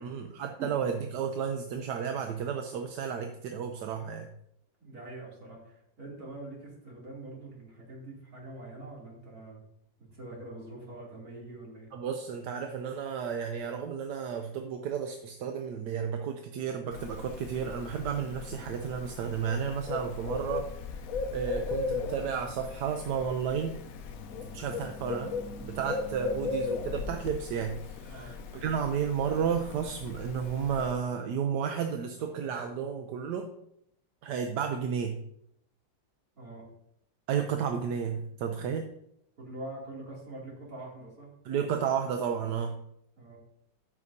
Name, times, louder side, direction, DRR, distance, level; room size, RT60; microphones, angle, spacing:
voice 1, 0.0-4.3 11.9-20.7 21.3-23.8 24.5-25.3 25.6-33.5 34.2-35.2 37.3-38.9 41.4-42.8, right 7 dB, 70° right, 5 dB, 1.2 m, -32 dB
voice 2, 4.8-9.6 10.0-11.9 18.5-18.6 24.4-24.7 28.1-28.3 36.4-36.6 39.4-41.3 43.2-43.4, right 2 dB, 50° right, -4 dB, 3.2 m, -44 dB
Bird, 16.9-30.9, left 4 dB, 60° left, 0.9 m, -38 dB
13.5 x 6.1 x 2.7 m, 0.74 s
omnidirectional pair, 2.0 m